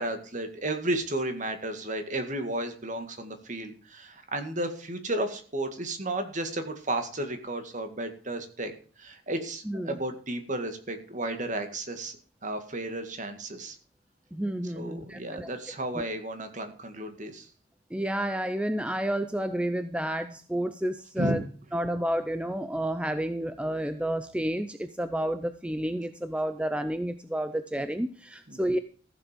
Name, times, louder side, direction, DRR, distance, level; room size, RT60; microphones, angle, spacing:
voice 1, 0.0-8.7 9.0-12.1 12.4-13.8 14.7-17.5 21.2-21.4 28.5-28.8, right 1 dB, 40° right, 7 dB, 2.0 m, -33 dB
voice 2, 14.3-15.5 15.9-16.0 17.9-21.4 21.7-28.8, right 1 dB, 5° right, 10 dB, 0.5 m, -30 dB
15.0 x 7.4 x 5.1 m, 0.42 s
head